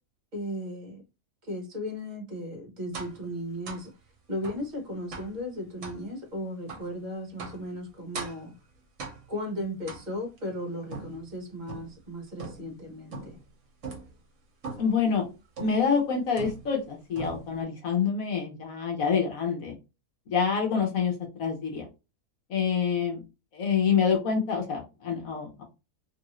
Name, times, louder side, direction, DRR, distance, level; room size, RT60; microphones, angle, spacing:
voice 1, 0.3-1.0 1.5-3.9 4.3-8.5 9.3-13.4, equal, 35° right, 1.1 m, -36 dB
sound 1, 2.9-3.2 3.7-3.9 4.4-4.7 5.1-5.4 5.8-6.0 6.7-6.9 7.4-7.7 8.1-8.5 9.0-9.4 9.9-10.4 10.9-12.0 12.4-12.8 13.1-13.5 13.8-14.1 14.6-15.0 15.6-15.9 16.4-16.9 17.2-17.6, right 4 dB, 55° right, 1.2 m, -40 dB
voice 2, 14.8-15.3 15.6-19.7 20.3-21.1 21.4-21.9 22.5-23.2 23.5-25.6, left 6 dB, 65° left, 1.2 m, -26 dB
3.1 x 2.6 x 3.0 m
omnidirectional pair, 1.7 m